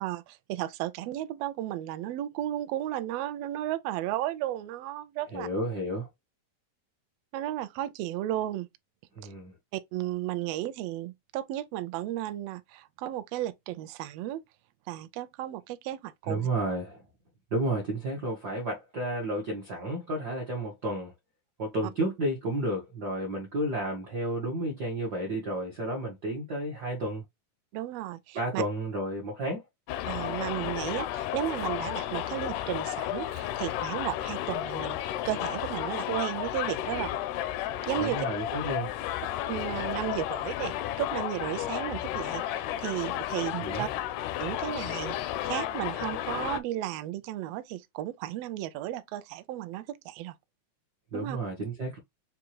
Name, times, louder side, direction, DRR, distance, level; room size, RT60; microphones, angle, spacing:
voice 1, 0.0-5.5 7.3-8.7 9.2-9.3 9.7-14.4 14.9-16.4 27.7-28.6 30.1-37.2 37.8-38.3 39.5-43.9 44.4-50.3 51.1-51.4, right 13 dB, 85° right, 1.4 m, -34 dB
voice 2, 5.3-6.1 9.2-9.5 16.3-17.0 17.5-21.1 21.6-27.2 28.3-29.6 38.0-38.9 43.6-43.8 51.1-52.0, right 1 dB, 65° right, 1.0 m, -31 dB
Subway metro underground, 29.9-46.6, left 12 dB, 85° left, 2.1 m, -33 dB
6.3 x 2.4 x 2.9 m
omnidirectional pair, 3.5 m